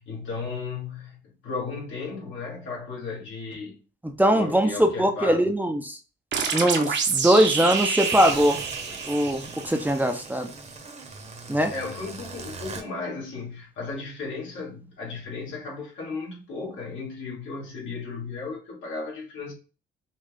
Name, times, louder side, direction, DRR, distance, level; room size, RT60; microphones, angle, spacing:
voice 1, 0.0-3.8 4.3-5.5 11.7-19.5, left 4 dB, 75° left, 2.4 m, -35 dB
voice 2, 4.0-6.0 6.5-8.6 9.1-10.5 11.5-11.7, right 1 dB, 10° right, 0.7 m, -21 dB
sound 1, 6.3-9.8, right 5 dB, 60° right, 1.0 m, -28 dB
sound 2, 7.7-12.8, right 4 dB, 35° right, 1.0 m, -39 dB
5.5 x 2.4 x 3.7 m
cardioid pair, 90°, 20 cm